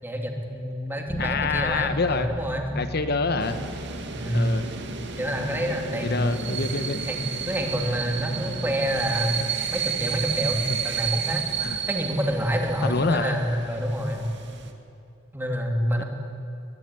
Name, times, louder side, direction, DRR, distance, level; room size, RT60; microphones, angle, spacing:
voice 1, 0.0-2.7 4.1-4.5 5.2-6.6 7.0-9.3 9.7-11.4 11.9-14.2 15.3-16.0, equal, 10° right, 2 dB, 3.1 m, -27 dB
Bass guitar, 1.1-10.9, equal, 30° left, 1.8 m, -40 dB
voice 2, 1.2-2.3 2.7-3.8 4.3-4.7 6.0-7.0 9.4-9.5 10.7-10.8 11.6-11.8 12.8-13.4 16.0-16.1, left 3 dB, 55° left, 10 dB, 1.1 m, -27 dB
sound 1, 3.4-14.7, right 6 dB, 65° right, 2.2 m, -32 dB
22.5 x 21.5 x 9.7 m, 2.8 s
head